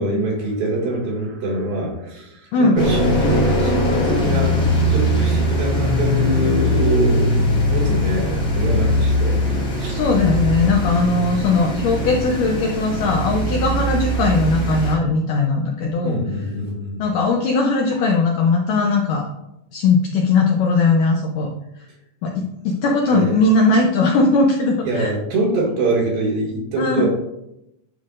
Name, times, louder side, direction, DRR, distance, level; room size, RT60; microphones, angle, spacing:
voice 1, 0.0-2.3 2.6-4.7 4.9-9.4 9.8-10.0 16.0-17.0 23.1-23.3 24.9-27.1, right 1 dB, 65° right, -3 dB, 3.5 m, -24 dB
sound 1, 2.8-14.9, equal, 30° left, 1.4 m, -20 dB
voice 2, 9.9-16.2 17.0-19.3 19.7-21.5 21.8-21.9 22.2-25.1 26.8-27.1, left 3 dB, 80° left, 0 dB, 1.9 m, -19 dB
11.0 x 5.6 x 2.5 m, 0.84 s
omnidirectional pair, 4.6 m